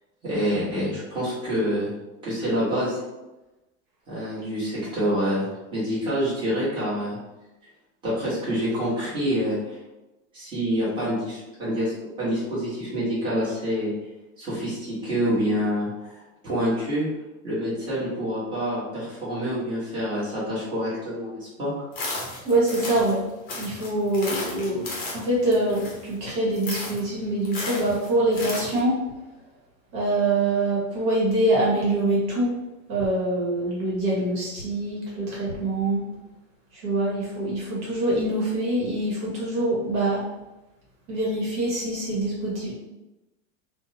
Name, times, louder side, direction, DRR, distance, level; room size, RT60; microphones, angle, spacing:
voice 1, 0.2-1.9 2.2-3.0 4.1-7.2 8.0-9.8 10.3-11.9 12.2-13.9 14.4-16.2 16.4-17.1 17.4-21.7, equal, 10° right, -10 dB, 1.2 m, -27 dB
sound 1, 21.9-23.2 23.5-26.2 26.5-27.0 27.4-28.8, left 2 dB, 20° left, 0.6 m, -34 dB
voice 2, 22.4-23.2 23.6-29.0 29.9-32.6 32.9-36.0 36.7-40.2 41.1-42.7, right 1 dB, 55° right, -6 dB, 1.2 m, -24 dB
2.6 x 2.1 x 2.7 m, 1.0 s
supercardioid pair, 145°, 40 cm